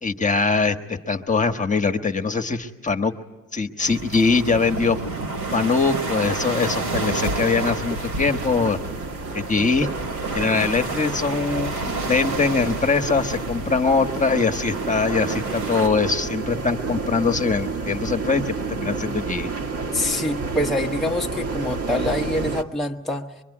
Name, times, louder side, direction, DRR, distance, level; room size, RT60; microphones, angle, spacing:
voice 1, 0.0-3.1 3.5-5.0 5.5-8.8 9.3-9.9 10.3-19.5, left 4 dB, 25° left, 5 dB, 1.4 m, -22 dB
sound 1, 3.8-15.9, right 3 dB, 90° right, 3.4 m, -30 dB
sound 2, 7.6-22.6, right 4 dB, 50° right, 1.8 m, -30 dB
voice 2, 19.9-23.3, left 1 dB, ahead, -1 dB, 1.2 m, -25 dB
23.5 x 23.5 x 9.9 m, 1.1 s
cardioid pair, 90°, 30 cm